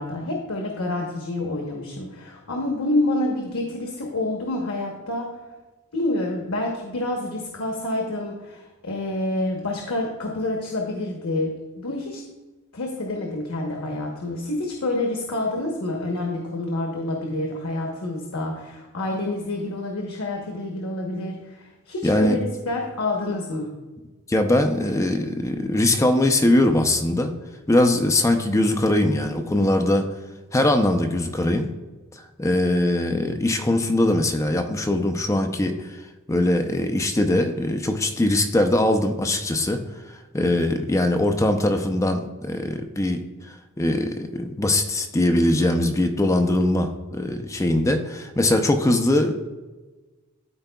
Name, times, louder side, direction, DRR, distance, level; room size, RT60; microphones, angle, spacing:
voice 1, 0.0-5.3 5.9-12.2 12.7-22.4 22.7-23.7, left 2 dB, 85° left, 0 dB, 1.0 m, -28 dB
voice 2, 22.0-22.4 24.3-27.3 27.7-30.1 30.5-31.7 32.4-36.0 36.3-39.8 40.3-43.2 43.8-49.3, left 1 dB, 15° left, 5 dB, 0.4 m, -21 dB
12.5 x 4.5 x 2.2 m, 1.2 s
head